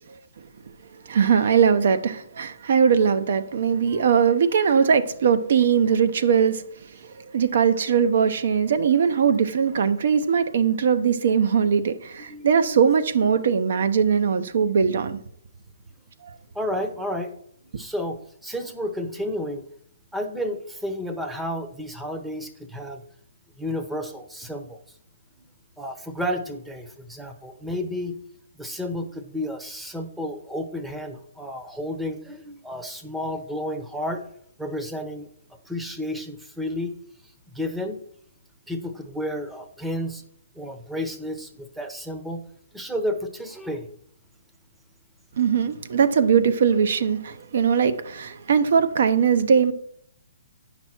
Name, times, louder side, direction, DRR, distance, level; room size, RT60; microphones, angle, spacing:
voice 1, 1.0-6.6 7.1-15.2 16.2-16.3 45.4-49.7, right 7 dB, 60° right, 0.8 m, -20 dB
voice 2, 12.3-12.8 16.5-17.3 17.8-18.2 18.4-19.6 20.1-23.0 23.6-24.8 25.8-28.2 28.6-34.2 34.6-35.3 35.7-36.9 37.5-38.0 38.7-40.2 40.6-42.4 42.7-43.9, equal, 5° right, 0.8 m, -31 dB
9.0 x 6.1 x 4.4 m
hypercardioid pair, 155°, 0 cm